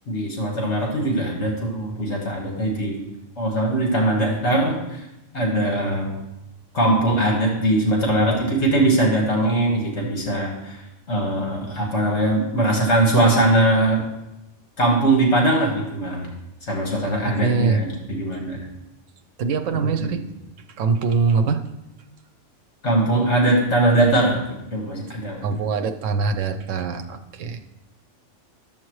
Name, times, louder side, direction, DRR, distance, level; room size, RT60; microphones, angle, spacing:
voice 1, 0.1-2.9 3.4-5.0 5.3-6.1 6.7-10.8 11.1-14.0 14.8-16.3 16.7-18.6 19.8-20.1 22.8-24.4 24.7-25.4, right 1 dB, 65° left, -1 dB, 1.9 m, -21 dB
voice 2, 17.0-17.8 19.4-20.2 20.8-21.6 25.4-27.6, right 5 dB, 90° right, 7 dB, 1.0 m, -23 dB
12.0 x 7.2 x 3.1 m, 0.94 s
omnidirectional pair, 1.3 m